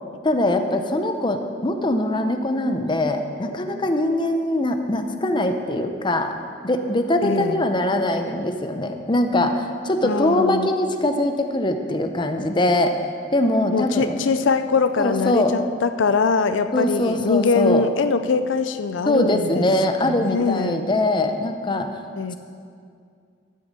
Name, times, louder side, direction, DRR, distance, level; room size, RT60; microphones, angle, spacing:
voice 1, 0.2-6.3 6.6-12.9 13.3-14.2 15.0-15.5 16.7-17.9 19.1-21.9, left 1 dB, 25° left, 6 dB, 0.7 m, -22 dB
voice 2, 7.2-7.6 10.0-10.7 13.7-19.6 20.0-20.8 22.2-22.4, left 4 dB, 85° left, 10 dB, 0.5 m, -22 dB
12.0 x 6.6 x 7.4 m, 2.3 s
head